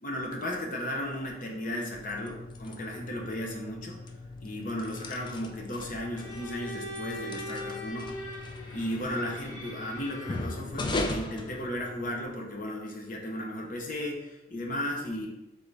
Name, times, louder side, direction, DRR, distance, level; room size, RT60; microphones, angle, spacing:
voice 1, 0.0-4.0 4.4-8.1 8.7-15.3, left 1 dB, 45° left, 0 dB, 0.7 m, -35 dB
sound 1, 1.8-12.3, left 2 dB, 25° left, 0.3 m, -39 dB
Bowed string instrument, 6.1-10.7, left 1 dB, 75° left, 1.1 m, -41 dB
3.9 x 3.6 x 3.3 m, 0.98 s
head